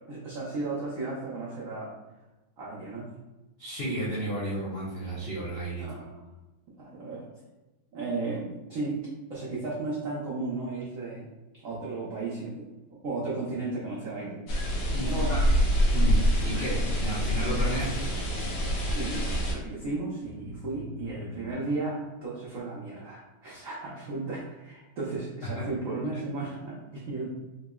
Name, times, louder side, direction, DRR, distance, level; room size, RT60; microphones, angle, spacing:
voice 1, 0.1-1.9 2.6-3.1 5.8-6.2 6.8-7.2 7.9-9.0 9.3-12.6 13.0-14.4 15.1-15.4 18.8-27.3, right 3 dB, 80° right, -6 dB, 0.7 m, -34 dB
voice 2, 3.6-5.9 14.9-15.5 15.9-18.2 25.6-25.7, right 1 dB, 85° left, -9 dB, 0.5 m, -33 dB
sound 1, 14.5-19.5, equal, 70° left, 1.3 m, -26 dB
sound 2, 16.3-19.0 19.7-19.8 20.2-21.5, left 2 dB, 30° left, 0.9 m, -43 dB
3.8 x 2.8 x 2.3 m, 1.1 s
omnidirectional pair, 2.2 m